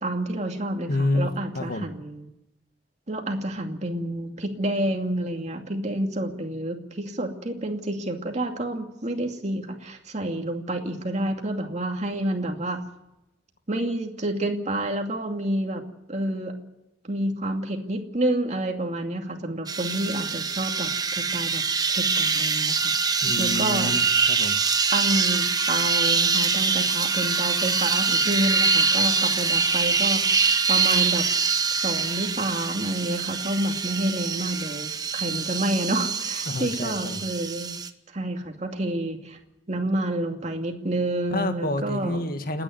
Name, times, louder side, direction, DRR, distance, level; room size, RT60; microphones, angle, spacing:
voice 1, 0.0-2.3 3.1-12.8 13.7-15.8 16.1-16.5 17.0-21.6 21.9-24.0 24.9-31.2 31.8-37.8 38.1-39.4 39.7-42.3, right 1 dB, 40° right, 3 dB, 2.5 m, -29 dB
voice 2, 0.9-1.3 1.6-1.9 23.2-24.6 36.5-37.2 41.3-42.6, left 2 dB, 55° left, 7 dB, 1.9 m, -28 dB
sound 1, 19.7-37.9, right 5 dB, 25° right, 1.1 m, -24 dB
29.5 x 10.0 x 9.4 m, 0.91 s
head